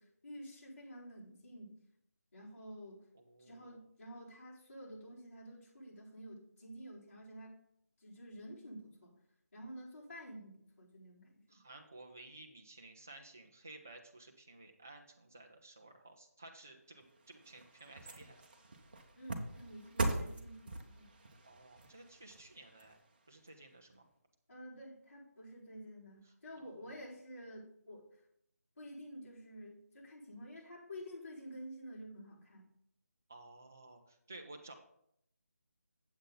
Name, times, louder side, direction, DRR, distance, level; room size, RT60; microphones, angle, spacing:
voice 1, 0.0-1.8 2.3-3.0 3.4-7.6 8.0-9.1 9.5-11.6 19.2-21.1 24.5-28.1 28.8-32.7, equal, 50° left, -7 dB, 4.0 m, -50 dB
voice 2, 3.1-3.8 11.5-18.4 21.4-23.0 23.3-24.1 26.3-27.0 33.3-34.7, right 2 dB, 10° right, 2 dB, 0.3 m, -55 dB
sound 1, 17.0-23.5 23.9-24.0, right 2 dB, 35° right, 0.8 m, -42 dB
8.1 x 7.7 x 3.9 m, 0.74 s
figure-of-eight pair, 175°, 9 cm